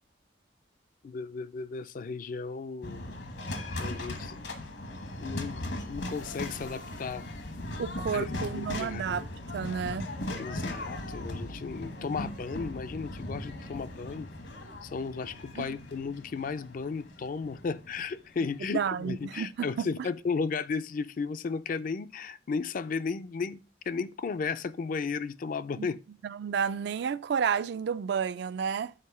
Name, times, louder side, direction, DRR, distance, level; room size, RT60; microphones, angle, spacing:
voice 1, 1.0-3.0 3.8-4.5 5.2-7.2 8.1-9.2 10.4-14.3 14.8-23.6 23.9-26.0, left 5 dB, 45° left, 0.4 m, -34 dB
sound 1, 2.8-19.0, left 1 dB, 70° left, 1.2 m, -38 dB
voice 2, 7.8-9.3 9.5-10.1 12.0-12.3 15.6-15.8 18.7-20.1 25.7-25.9 26.2-28.9, right 7 dB, 60° right, 0.3 m, -31 dB
6.6 x 4.4 x 5.4 m
head